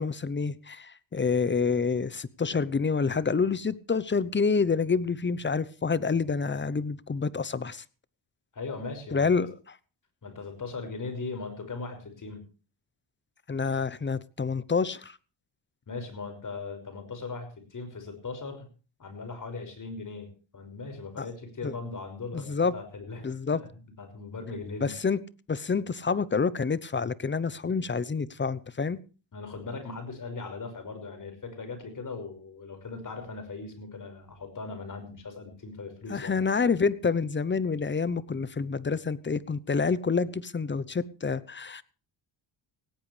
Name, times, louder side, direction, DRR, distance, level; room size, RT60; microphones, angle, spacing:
voice 1, 0.0-7.8 9.1-9.5 13.5-15.2 21.2-21.3 21.6-21.7 22.3-22.7 23.2-23.6 24.8-25.2 25.5-29.0 36.1-41.8, left 5 dB, 25° left, 0.7 m, -28 dB
voice 2, 8.5-9.5 10.2-12.4 15.9-18.7 19.0-23.6 24.0-24.9 29.3-36.4, left 4 dB, 40° left, 5.6 m, -39 dB
17.5 x 17.0 x 3.3 m
cardioid pair, 105°, 47 cm